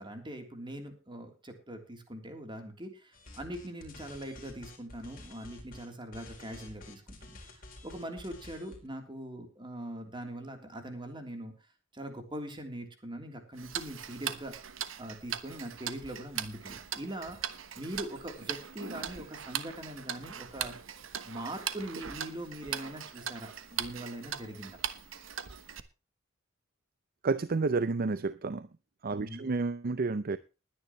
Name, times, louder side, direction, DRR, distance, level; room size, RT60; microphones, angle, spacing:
voice 1, 0.0-11.5 11.9-14.5 15.0-17.4 17.7-20.7 21.2-24.8 29.1-29.5, right 1 dB, 25° right, 3.3 m, -42 dB
sound 1, 3.1-5.9 6.1-8.9, left 2 dB, 45° left, 4.4 m, -50 dB
Tick-tock, 13.6-25.8, right 9 dB, 80° right, 1.1 m, -40 dB
voice 2, 27.2-28.7 29.0-30.4, right 3 dB, 50° right, 0.6 m, -30 dB
20.5 x 10.0 x 3.1 m
head